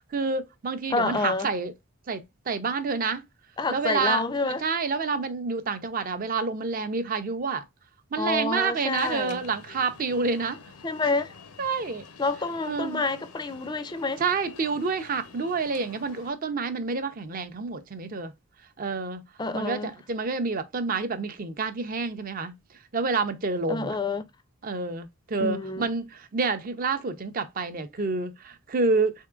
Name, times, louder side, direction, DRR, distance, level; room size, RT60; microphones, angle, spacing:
voice 1, 0.0-1.7 2.1-3.2 3.7-7.6 8.1-10.6 11.6-12.0 12.7-13.0 14.2-18.3 18.8-19.2 19.5-22.6 22.9-24.0 24.6-29.1, right 4 dB, 40° right, 0.5 m, -28 dB
voice 2, 0.9-1.5 3.6-4.6 8.2-9.4 10.8-11.3 12.2-14.2 19.4-19.9 23.7-24.2 25.4-25.9, left 3 dB, 20° left, 0.3 m, -28 dB
Alarm, 8.9-16.3, left 5 dB, 85° left, 0.6 m, -48 dB
3.6 x 3.5 x 2.3 m
head